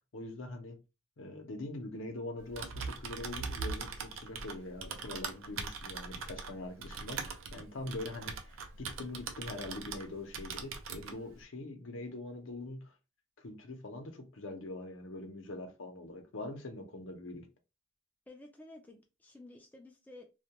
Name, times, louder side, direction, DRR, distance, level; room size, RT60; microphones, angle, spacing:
voice 1, 0.1-0.8 1.2-12.8 13.4-17.5, left 2 dB, 75° left, 0.7 m, -43 dB
Typing, 2.4-10.1 10.3-11.2, right 5 dB, 80° right, 0.4 m, -41 dB
voice 2, 18.3-20.2, left 2 dB, 10° left, 0.3 m, -53 dB
2.2 x 2.2 x 2.8 m
head